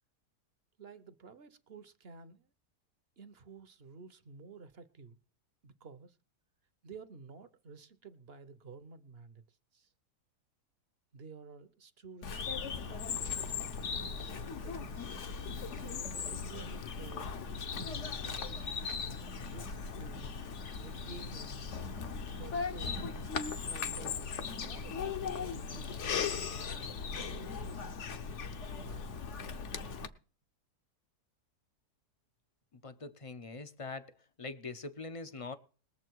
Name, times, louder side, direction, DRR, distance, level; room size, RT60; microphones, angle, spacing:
voice 1, 0.8-2.5 3.2-5.2 5.6-6.2 6.8-9.9 11.1-15.1 15.7-17.3 17.7-18.8 19.4-20.4 20.8-21.8 22.3-23.3 23.6-26.7 27.2-28.0 28.8-29.1, right 4 dB, 45° right, 1.0 m, -52 dB
Bird vocalization bird call bird song, 12.2-30.1, left 5 dB, 50° left, 1.1 m, -38 dB
voice 2, 32.8-34.1 34.4-35.5, left 3 dB, 30° left, 0.6 m, -43 dB
21.5 x 7.3 x 4.6 m
omnidirectional pair, 1.7 m